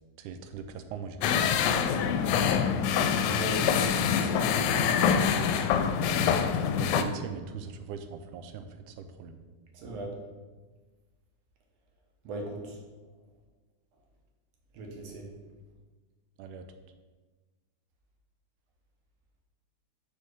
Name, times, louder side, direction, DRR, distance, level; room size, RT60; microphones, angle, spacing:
voice 1, 0.2-2.8 6.7-9.4 16.4-16.7, right 6 dB, 80° right, 8 dB, 2.0 m, -41 dB
sound 1, 1.2-7.0, left 7 dB, 80° left, 1.9 m, -25 dB
voice 2, 3.3-5.0 9.7-10.1 12.2-12.8 14.7-15.3, right 2 dB, 60° right, 1 dB, 2.0 m, -39 dB
5.5 x 5.0 x 6.3 m, 1.3 s
omnidirectional pair, 3.7 m